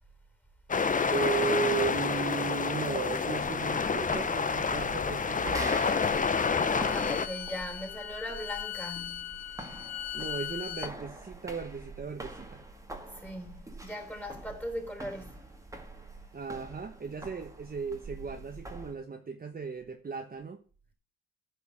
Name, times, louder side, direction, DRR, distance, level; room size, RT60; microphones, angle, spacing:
sound 1, 0.7-7.3, left 5 dB, 25° left, 0.8 m, -28 dB
voice 1, 1.1-5.9 10.1-12.6 16.3-20.6, right 5 dB, 30° right, 1.2 m, -35 dB
sound 2, 3.2-19.0, right 2 dB, 10° right, 1.9 m, -45 dB
Bowed string instrument, 5.7-10.9, left 11 dB, 60° left, 0.9 m, -40 dB
voice 2, 6.5-9.4 13.1-15.5, equal, 5° left, 3.5 m, -39 dB
10.5 x 5.6 x 8.4 m
cardioid pair, 90°, 30 cm